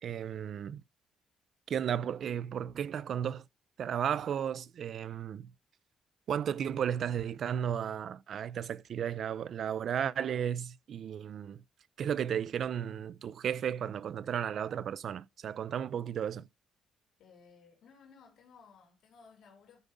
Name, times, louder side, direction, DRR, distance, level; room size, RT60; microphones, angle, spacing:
voice 1, 0.0-0.8 1.7-3.4 3.8-5.5 6.3-11.6 12.0-16.5, right 8 dB, 60° right, 0.5 m, -34 dB
voice 2, 17.2-19.8, left 5 dB, 75° left, 3.0 m, -58 dB
14.0 x 5.3 x 3.5 m
cardioid pair, 90°, 0 cm